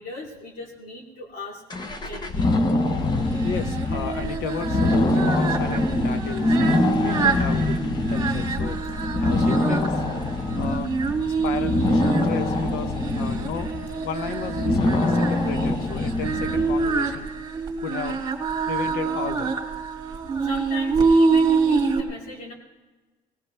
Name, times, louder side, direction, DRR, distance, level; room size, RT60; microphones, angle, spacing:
voice 1, 0.0-1.6 2.0-2.5 20.4-22.5, left 2 dB, 65° left, -2 dB, 2.9 m, -38 dB
sound 1, 1.7-17.1, left 2 dB, 25° left, 1.1 m, -24 dB
Singing, 3.3-22.0, right 4 dB, 25° right, 2.1 m, -26 dB
voice 2, 3.4-7.8 8.1-10.0 10.5-13.7 14.0-17.3 17.8-18.2 18.7-19.5, left 7 dB, 80° left, 10 dB, 0.9 m, -34 dB
19.5 x 18.0 x 3.4 m, 1.3 s
cardioid pair, 140°, 16 cm